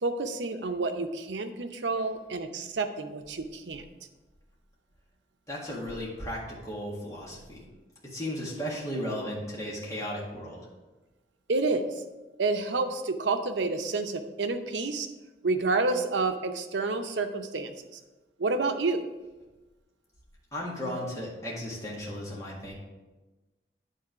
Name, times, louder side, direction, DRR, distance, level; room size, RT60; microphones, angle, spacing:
voice 1, 0.0-3.8 11.5-11.9 12.4-15.1 15.4-17.7 18.4-19.0, right 3 dB, 85° right, 7 dB, 0.7 m, -29 dB
voice 2, 5.5-7.6 8.0-10.6 20.5-22.7, equal, 20° left, -5 dB, 1.8 m, -35 dB
9.2 x 3.8 x 6.0 m, 1.1 s
head